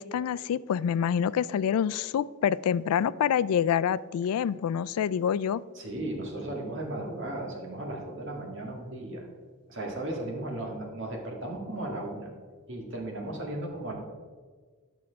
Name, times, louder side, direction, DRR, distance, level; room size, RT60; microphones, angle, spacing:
voice 1, 0.0-5.6, left 8 dB, 85° left, 18 dB, 0.3 m, -27 dB
voice 2, 5.8-9.3 9.7-12.3 12.7-13.9, right 1 dB, 55° right, 0 dB, 1.9 m, -35 dB
10.5 x 6.1 x 4.6 m, 1.5 s
head